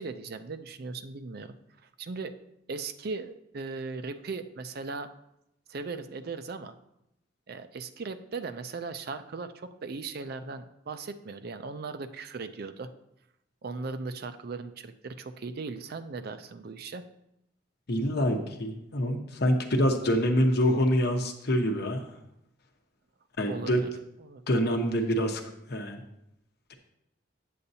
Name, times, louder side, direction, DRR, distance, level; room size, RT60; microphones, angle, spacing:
voice 1, 0.0-1.6 1.8-2.3 2.7-5.1 5.7-6.7 7.5-12.9 13.6-17.0 23.4-23.9 24.2-24.4, right 4 dB, 55° right, 10 dB, 0.5 m, -38 dB
voice 2, 17.9-22.0 23.4-23.8 24.5-25.4 25.7-26.0, equal, 60° left, 5 dB, 0.9 m, -26 dB
8.4 x 7.8 x 2.7 m, 0.83 s
head